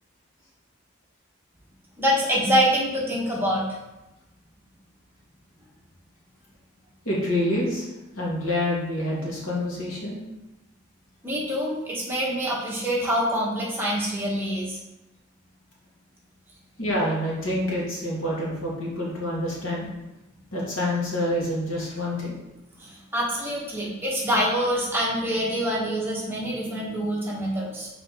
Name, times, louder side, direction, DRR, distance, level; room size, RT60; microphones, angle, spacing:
voice 1, 2.0-3.6 11.2-14.8 22.8-27.9, equal, 10° right, -5 dB, 1.2 m, -25 dB
voice 2, 7.1-7.9 8.2-10.2 16.8-19.9 20.5-22.3, left 1 dB, 90° left, -5 dB, 2.2 m, -27 dB
5.7 x 4.7 x 3.6 m, 0.95 s
head